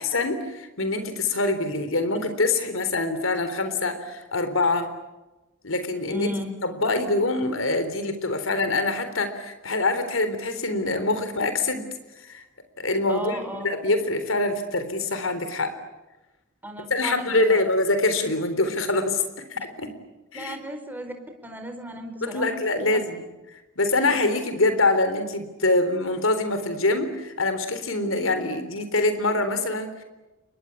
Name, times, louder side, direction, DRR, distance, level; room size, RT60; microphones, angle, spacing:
voice 1, 0.0-4.9 5.6-6.3 6.6-11.9 12.2-12.4 12.8-15.8 16.9-19.2 19.5-19.9 20.3-20.6 22.2-23.2 23.8-30.0, left 2 dB, 80° left, 10 dB, 3.8 m, -24 dB
voice 2, 6.1-6.5 13.1-13.7 16.6-17.7 20.3-21.1 21.4-22.5 22.7-23.0 24.1-24.2, equal, 10° right, 5 dB, 4.5 m, -34 dB
29.0 x 23.5 x 8.4 m, 1.1 s
head